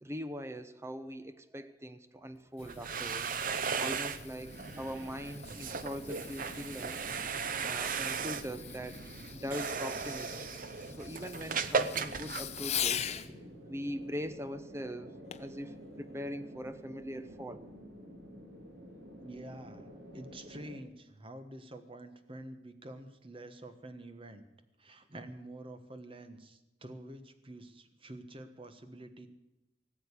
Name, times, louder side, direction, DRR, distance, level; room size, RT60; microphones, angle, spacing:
voice 1, 0.0-3.3 3.8-7.0 7.6-8.9 9.3-10.6 11.0-13.4 13.7-15.1 15.4-17.6, equal, 15° right, 12 dB, 0.9 m, -41 dB
Fireworks, 2.3-13.3 15.3-15.6 16.2-16.3, left 10 dB, 40° left, 0.7 m, -42 dB
sound 1, 2.6-13.2, right 5 dB, 50° right, 0.8 m, -37 dB
sound 2, 4.4-20.8, equal, 70° right, 3.1 m, -51 dB
voice 2, 19.2-24.4 24.8-29.3, right 1 dB, 30° right, 9 dB, 1.4 m, -48 dB
18.5 x 7.9 x 8.3 m, 0.95 s
head